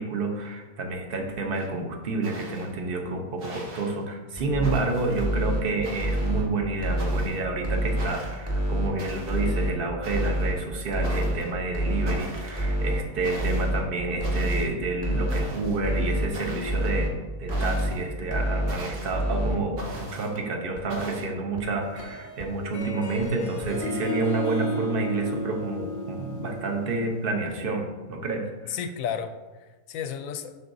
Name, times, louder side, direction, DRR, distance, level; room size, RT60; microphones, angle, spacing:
voice 1, 0.0-17.1 17.4-28.8, right 3 dB, 40° right, 3 dB, 1.0 m, -29 dB
sound 1, 1.5-1.7 2.2-2.8 3.4-3.9 4.6-5.2 5.8-6.4 7.0-7.4 8.0-8.5 9.0-9.5 10.0-10.5 11.0-11.5 12.1-12.7 13.2-13.7 14.2-14.7 15.3-15.8 16.3-17.0 17.5-18.0 18.7-19.2 19.8-20.3 20.9-21.3, right 1 dB, 90° right, 1.8 m, -39 dB
sound 2, 4.4-4.8 5.2-5.6 6.0-6.4 6.8-7.2 7.6-8.1 8.5-8.9 9.3-9.7 10.1-10.5 10.9-11.3 11.7-12.2 12.6-13.0 13.4-13.8 14.2-14.6 15.0-15.5 15.8-16.3 16.7-17.1 17.5-17.9 18.3-18.7 19.1-19.5 19.9-20.0 20.4-20.5 20.8-20.9 21.2-21.3 21.6-21.7 22.0-22.1 22.4-22.5 22.8-22.9 23.2-23.3 23.6-23.7, equal, 5° right, 1.6 m, -26 dB
Harp, 21.8-27.4, left 1 dB, 15° left, 0.6 m, -34 dB
voice 2, 28.7-30.5, left 8 dB, 70° left, 8 dB, 0.9 m, -33 dB
7.9 x 6.4 x 2.7 m, 1.2 s
omnidirectional pair, 1.7 m